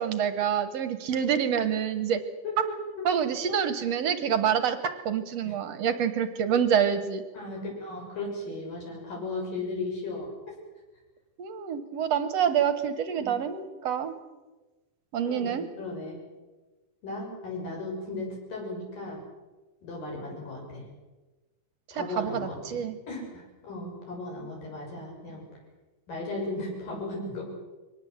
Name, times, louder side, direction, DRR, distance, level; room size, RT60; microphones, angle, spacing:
voice 1, 0.0-2.2 3.1-7.2 11.4-14.1 15.1-15.7 21.9-23.0, right 8 dB, 60° right, 10 dB, 1.9 m, -27 dB
voice 2, 2.4-2.8 5.4-5.5 7.3-10.3 13.2-13.3 15.2-16.2 17.0-19.2 19.8-20.8 21.9-25.4 26.1-27.4, left 2 dB, 70° left, -1 dB, 8.5 m, -36 dB
23.5 x 18.5 x 8.0 m, 1.2 s
omnidirectional pair, 4.0 m